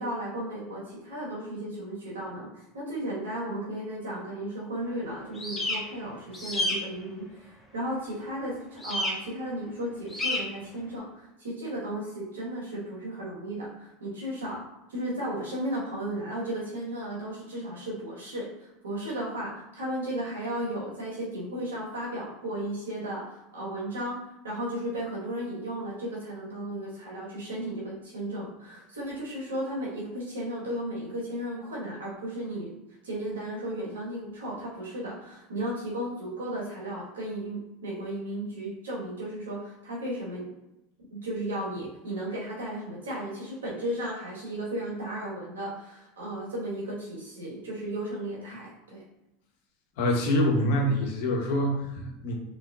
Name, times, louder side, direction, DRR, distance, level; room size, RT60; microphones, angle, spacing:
voice 1, 0.0-2.5 2.7-14.6 14.9-24.2 24.4-32.7 33.0-40.5 41.1-49.0, right 1 dB, 90° right, -5 dB, 1.4 m, -35 dB
sound 1, 5.4-5.8 6.3-6.7 8.8-9.1 10.1-10.4, left 2 dB, 10° left, 1.2 m, -29 dB
voice 2, 50.0-52.3, equal, 70° left, 1 dB, 0.9 m, -25 dB
3.6 x 3.0 x 2.4 m, 0.92 s
hypercardioid pair, 95°, 0 cm